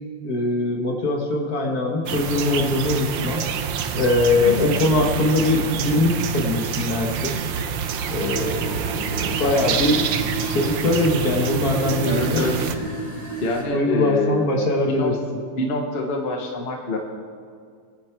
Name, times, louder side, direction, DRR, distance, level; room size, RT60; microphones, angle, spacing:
voice 1, 0.2-3.5 3.9-7.3 8.1-8.7 9.3-10.0 10.4-12.5 13.7-15.1, left 2 dB, 55° left, 1 dB, 1.9 m, -22 dB
sound 1, 2.1-12.8, right 7 dB, 85° right, 1.5 m, -27 dB
voice 2, 4.4-4.7 12.1-12.7 13.4-14.5 14.9-15.2 15.6-17.0, left 2 dB, 35° left, 2 dB, 1.4 m, -25 dB
sound 2, 8.2-13.6, right 3 dB, 20° right, 3.9 m, -33 dB
22.5 x 9.8 x 4.5 m, 2.1 s
omnidirectional pair, 2.0 m